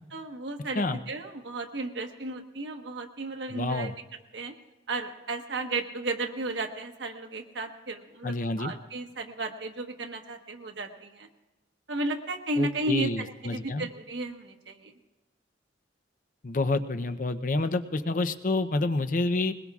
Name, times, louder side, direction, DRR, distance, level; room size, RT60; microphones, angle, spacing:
voice 1, 0.1-3.9 4.3-4.5 4.9-11.3 11.9-14.9, right 2 dB, 80° right, 4 dB, 1.3 m, -34 dB
voice 2, 3.5-3.9 8.2-8.7 12.6-13.9 16.4-19.5, left 2 dB, 45° left, 10 dB, 0.6 m, -28 dB
21.0 x 21.0 x 2.4 m, 1.1 s
head